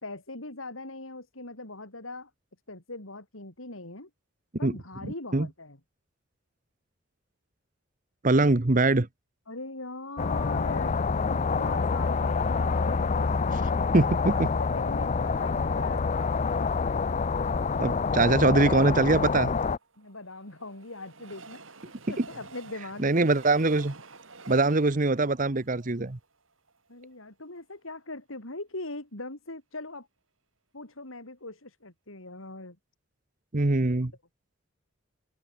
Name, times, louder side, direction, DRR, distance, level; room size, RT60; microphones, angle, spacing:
voice 1, 0.0-2.3 2.7-4.1 4.6-5.8 9.5-11.0 11.3-13.6 14.3-16.4 20.0-21.6 22.1-23.3 26.9-30.1 30.7-32.8, left 2 dB, 85° left, 5.1 m, -41 dB
voice 2, 8.2-9.1 13.9-14.5 17.8-19.5 22.2-22.3 23.0-23.9 24.5-26.2 33.5-34.1, right 2 dB, 40° right, 1.0 m, -23 dB
sound 1, 10.2-19.8, left 4 dB, 35° left, 0.4 m, -27 dB
Train, 19.5-26.8 27.3-27.4 27.6-27.7, right 3 dB, 75° right, 5.7 m, -49 dB
open air
head